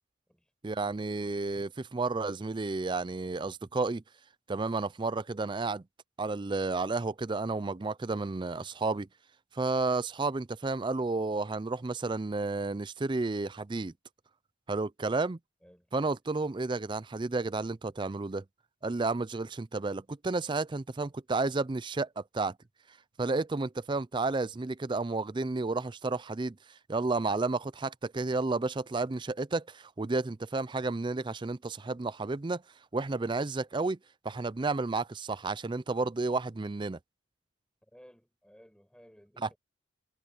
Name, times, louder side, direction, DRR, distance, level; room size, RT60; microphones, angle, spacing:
voice 1, 0.6-4.0 4.5-5.8 6.2-9.1 9.5-13.9 14.7-15.4 15.9-18.4 18.8-22.6 23.2-26.6 26.9-32.6 32.9-34.0 34.2-37.0 39.4-39.5, right 3 dB, 25° right, 0.4 m, -31 dB
voice 2, 15.6-15.9 37.8-39.6, equal, 5° left, 5.0 m, -58 dB
head